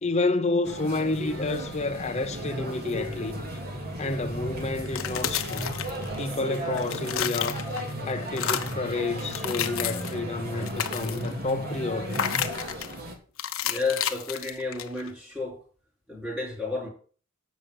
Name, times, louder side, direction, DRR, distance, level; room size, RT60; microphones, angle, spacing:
voice 1, 0.0-3.4 4.0-5.8 6.2-7.6 8.1-12.2, left 3 dB, 30° left, 0.7 m, -29 dB
sound 1, 0.6-13.1, equal, 45° right, 2.6 m, -35 dB
sound 2, 1.2-6.2, left 1 dB, 75° right, 2.2 m, -49 dB
sound 3, 4.8-6.4 6.7-7.9 8.3-8.8 9.2-10.2 10.5-11.4 12.1-12.9 13.4-15.1, left 9 dB, 70° left, 0.9 m, -31 dB
voice 2, 13.6-15.6 16.1-16.9, left 3 dB, 5° right, 4.8 m, -31 dB
8.3 x 6.3 x 7.5 m
head